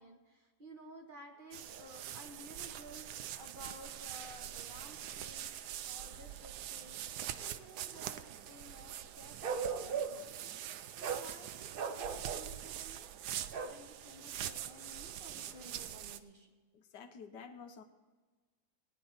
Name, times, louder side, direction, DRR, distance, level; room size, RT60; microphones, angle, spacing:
voice 1, 0.0-5.5 5.8-13.1 13.7-16.5, right 1 dB, 30° right, 1 dB, 1.7 m, -54 dB
sound 1, 1.5-16.2, right 11 dB, 75° right, 1.2 m, -44 dB
Bark, 9.4-10.3 11.0-11.3 11.7-12.5 13.5-13.8, right 6 dB, 50° right, 0.6 m, -37 dB
voice 2, 16.7-17.8, left 6 dB, 80° left, 7 dB, 1.6 m, -50 dB
18.5 x 9.9 x 4.3 m, 1.3 s
omnidirectional pair, 1.8 m